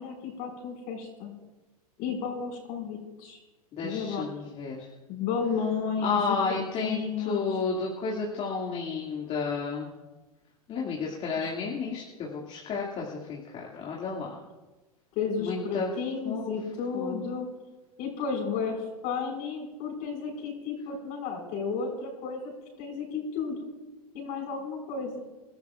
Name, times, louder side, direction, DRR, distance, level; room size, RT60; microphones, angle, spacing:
voice 1, 0.0-1.3 2.0-3.4 3.8-4.3 5.1-7.6 11.4-11.5 15.2-17.5 18.0-18.8 19.0-22.5 22.8-23.7 24.1-25.2, left 5 dB, 50° left, 2 dB, 5.2 m, -33 dB
voice 2, 3.7-4.9 6.0-9.9 10.7-14.4 15.4-15.9 16.2-16.5 16.9-17.3, left 4 dB, 35° left, -3 dB, 2.3 m, -32 dB
27.5 x 13.0 x 2.5 m, 1.2 s
hypercardioid pair, 105°, 19 cm